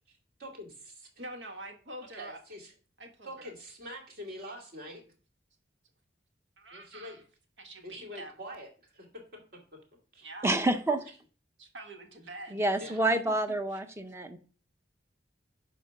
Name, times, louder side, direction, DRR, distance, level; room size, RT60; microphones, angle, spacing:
voice 1, 0.1-1.1 2.1-2.7 3.2-5.0 6.7-7.2 7.8-9.1 9.3-9.4 10.1-10.3 12.8-13.0, equal, 55° right, 0 dB, 2.5 m, -45 dB
voice 2, 1.2-2.4 3.0-3.5 6.6-7.2 7.6-8.4 10.2-10.5 11.6-12.7 13.3-13.4 13.7-13.8, right 1 dB, 80° right, 2 dB, 1.7 m, -45 dB
voice 3, 10.4-11.0 12.5-14.4, right 2 dB, 15° right, 8 dB, 0.7 m, -28 dB
6.9 x 5.1 x 5.9 m, 0.40 s
head